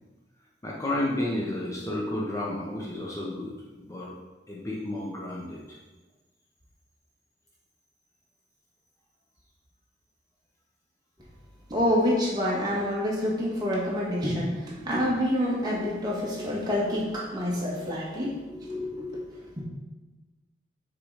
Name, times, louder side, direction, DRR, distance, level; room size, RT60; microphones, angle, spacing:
voice 1, 0.6-3.5 3.8-4.1 4.5-5.6, left 1 dB, 20° left, -4 dB, 0.8 m, -31 dB
voice 2, 11.7-19.2 19.6-19.7, left 1 dB, 25° right, -5 dB, 1.6 m, -27 dB
6.5 x 3.9 x 4.8 m, 1.1 s
head